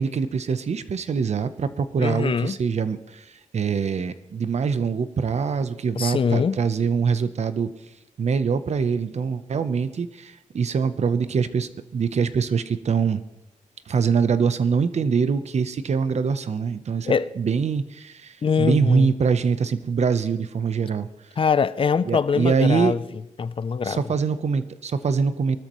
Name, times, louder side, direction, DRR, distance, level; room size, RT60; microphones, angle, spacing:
voice 1, 0.0-7.7 8.2-13.2 13.9-21.1 22.0-22.9 23.8-25.6, right 5 dB, 55° right, 0.9 m, -24 dB
voice 2, 2.0-2.5 6.0-6.6 17.1-17.3 18.4-19.1 21.4-23.0 23.4-24.0, left 6 dB, 40° left, 0.5 m, -23 dB
23.5 x 13.0 x 3.1 m
wide cardioid pair, 110°, 13 cm